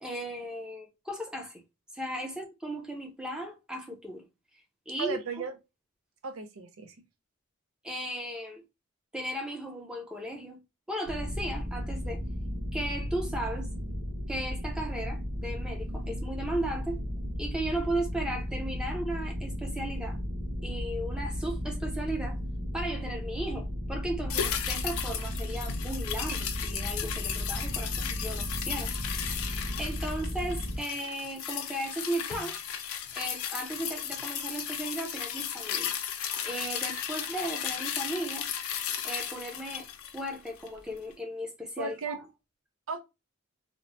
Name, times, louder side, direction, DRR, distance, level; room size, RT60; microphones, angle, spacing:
voice 1, 0.0-1.6 1.9-4.3 4.9-5.2 7.8-8.6 9.1-10.6 10.9-12.2 12.7-13.7 14.3-17.0 17.4-20.2 20.6-22.4 22.7-32.6 33.2-36.0 36.4-38.5 39.0-39.9 40.1-42.2, right 1 dB, 5° right, 0.5 m, -36 dB
voice 2, 5.0-5.5 6.2-6.9 41.8-42.2 42.9-43.0, right 4 dB, 75° right, 0.5 m, -35 dB
sound 1, 11.1-30.8, equal, 40° right, 1.1 m, -35 dB
sound 2, 24.3-40.8 41.1-41.2, left 9 dB, 85° left, 0.5 m, -35 dB
2.8 x 2.1 x 2.5 m
head